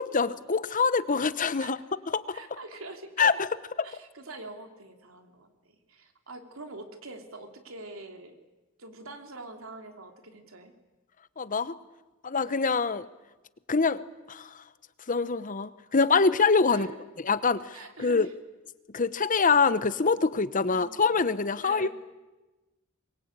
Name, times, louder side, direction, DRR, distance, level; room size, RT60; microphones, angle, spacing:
voice 1, 0.0-1.8 2.1-2.4 3.2-3.5 11.4-11.8 12.2-13.1 13.7-14.0 14.3-14.6 15.1-16.9 17.2-18.3 18.9-21.9, left 4 dB, 40° left, 15 dB, 0.9 m, -25 dB
voice 2, 2.3-3.4 3.8-8.3 8.8-10.7 16.7-17.0 17.7-18.3 20.7-20.9 21.6-21.9, right 2 dB, 90° right, 5 dB, 3.2 m, -45 dB
23.5 x 22.0 x 8.9 m, 1.1 s
head